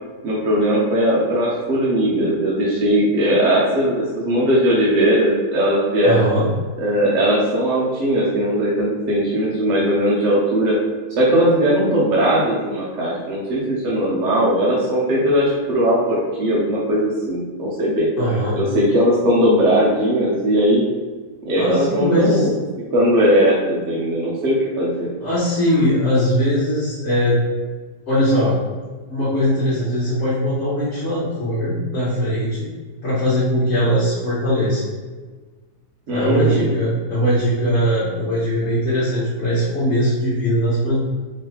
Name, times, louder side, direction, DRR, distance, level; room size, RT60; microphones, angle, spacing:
voice 1, 0.2-6.3 6.8-10.8 11.1-18.1 18.6-20.8 21.5-22.5 22.9-25.1 36.1-36.7, equal, 55° right, -6 dB, 0.9 m, -18 dB
voice 2, 6.0-6.5 18.2-18.6 21.6-22.5 25.2-27.4 28.1-28.5 29.1-32.7 33.0-34.9 36.1-41.0, equal, 50° left, -10 dB, 1.2 m, -20 dB
3.5 x 3.1 x 2.9 m, 1.4 s
omnidirectional pair, 1.7 m